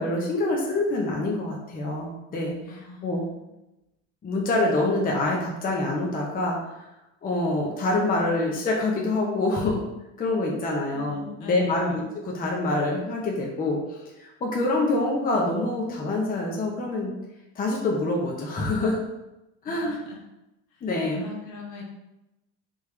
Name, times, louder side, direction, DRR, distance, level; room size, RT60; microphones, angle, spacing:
voice 1, 0.0-2.5 3.0-3.2 4.2-6.6 7.2-9.9 10.2-17.1 17.6-19.0 19.6-20.0 20.8-21.2, left 2 dB, 25° left, -2 dB, 0.7 m, -26 dB
voice 2, 2.6-3.6 10.9-12.0 19.7-20.2 20.7-20.9 21.2-21.8, left 5 dB, 65° left, -1 dB, 1.2 m, -40 dB
3.5 x 3.4 x 3.2 m, 0.95 s
supercardioid pair, 115°, 35 cm